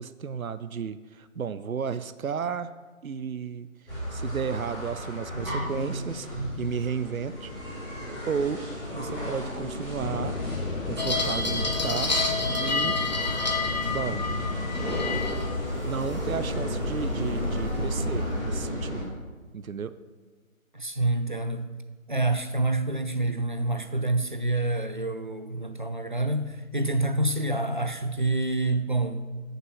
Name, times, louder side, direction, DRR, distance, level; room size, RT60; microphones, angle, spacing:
voice 1, 0.0-2.7 3.0-6.3 6.6-8.0 8.3-8.6 8.9-10.4 10.9-12.2 12.6-13.0 13.9-14.3 15.8-19.2 19.5-19.9, right 6 dB, 75° right, 0.7 m, -33 dB
sound 1, 3.9-19.0, equal, 5° left, 3.2 m, -33 dB
sound 2, 10.0-16.7, left 4 dB, 70° left, 1.0 m, -36 dB
sound 3, 11.0-18.4, left 3 dB, 30° left, 0.9 m, -31 dB
voice 2, 20.7-21.7 22.1-29.3, right 2 dB, 35° right, 0.5 m, -27 dB
13.5 x 6.7 x 4.8 m
figure-of-eight pair, 160°, 41 cm